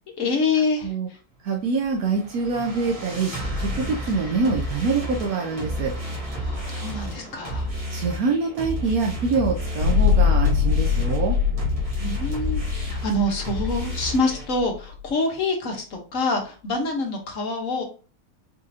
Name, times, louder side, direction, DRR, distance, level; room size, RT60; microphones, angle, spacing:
voice 1, 0.2-0.9 6.4-7.7 12.0-17.8, left 2 dB, 60° left, 2 dB, 1.5 m, -26 dB
voice 2, 1.4-3.3 3.6-5.9 7.9-11.4, right 4 dB, 80° right, 1 dB, 1.2 m, -25 dB
sound 1, 1.8-14.4, equal, 25° right, 1.3 m, -32 dB
sound 2, 9.8-15.0, left 6 dB, 50° right, 2.0 m, -22 dB
4.4 x 3.6 x 2.8 m, 0.36 s
omnidirectional pair, 1.6 m